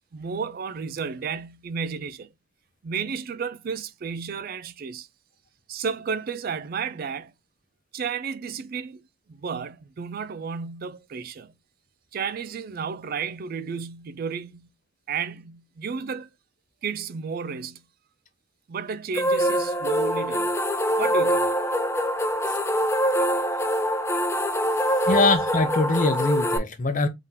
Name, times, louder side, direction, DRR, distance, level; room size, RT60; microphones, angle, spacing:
voice 1, 0.1-2.3 2.8-5.1 5.7-7.3 7.9-11.5 12.1-14.7 15.1-16.3 16.8-17.8 18.7-20.5 21.0-21.5 25.0-25.2, right 6 dB, 50° right, 0.4 m, -32 dB
sound 1, 19.1-26.6, equal, 15° left, 0.4 m, -24 dB
voice 2, 25.0-27.1, left 3 dB, 40° left, 0.7 m, -23 dB
3.7 x 2.8 x 3.7 m
head